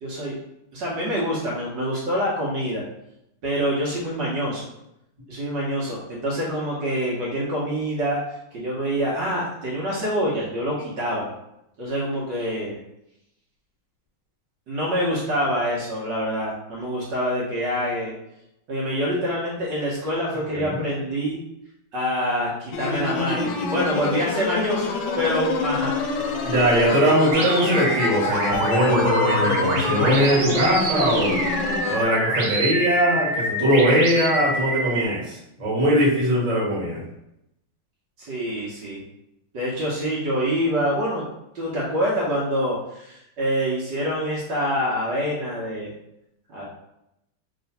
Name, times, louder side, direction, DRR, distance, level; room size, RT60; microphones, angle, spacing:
voice 1, 0.0-0.3 0.7-2.8 3.4-4.6 5.3-8.2 8.5-11.3 11.8-12.7 14.7-18.1 18.7-21.4 21.9-26.0 38.2-39.0 39.5-41.2 41.5-45.9 46.5-46.6, equal, 65° right, -5 dB, 1.5 m, -26 dB
sound 1, 22.7-32.0, left 4 dB, 75° left, 1.1 m, -27 dB
voice 2, 26.4-31.4 31.9-37.0, equal, 20° right, -7 dB, 1.3 m, -21 dB
sound 2, 27.3-35.0, right 1 dB, 80° right, 1.7 m, -26 dB
3.3 x 3.0 x 4.0 m, 0.83 s
omnidirectional pair, 2.3 m